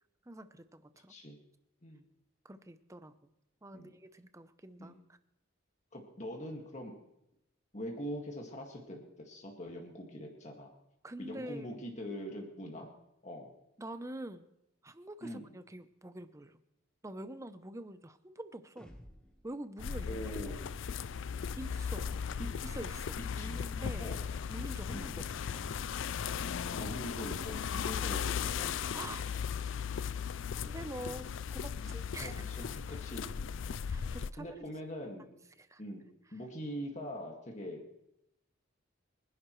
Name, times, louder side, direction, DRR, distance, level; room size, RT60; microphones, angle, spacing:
voice 1, 0.3-1.1 2.4-3.3 3.6-5.0 11.0-11.8 13.8-14.5 14.8-16.6 17.0-18.9 19.4-20.2 21.6-22.1 22.6-24.1 24.5-25.2 28.9-29.2 30.6-32.4 33.9-34.7 35.6-35.8, right 1 dB, 15° right, 11 dB, 0.7 m, -46 dB
voice 2, 5.9-6.9 7.7-10.7 11.2-12.9 13.2-13.5 15.2-15.5 20.0-20.6 22.4-22.5 23.3-23.6 24.0-24.2 24.9-25.1 26.7-28.7 31.8-33.2 34.4-35.3 35.8-36.0 36.3-37.8, equal, 35° left, 1 dB, 2.0 m, -43 dB
sound 1, 18.8-19.4 20.5-21.1 22.1-22.7 23.8-24.5 25.5-26.2 27.5-28.2, equal, 5° left, 1.3 m, -53 dB
sound 2, 19.8-34.3, left 7 dB, 65° left, 0.4 m, -37 dB
25.0 x 11.0 x 3.2 m, 0.84 s
head